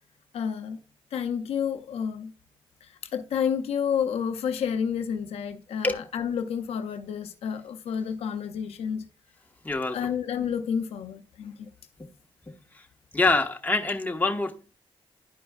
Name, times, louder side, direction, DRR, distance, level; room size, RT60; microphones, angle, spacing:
voice 1, 0.3-0.8 1.1-2.3 2.8-9.1 9.9-11.7, left 7 dB, 90° left, 0.5 m, -30 dB
voice 2, 9.6-10.1 12.5-12.8 13.1-14.5, left 3 dB, 15° left, 1.2 m, -26 dB
11.0 x 5.1 x 2.3 m
cardioid pair, 80°, 10 cm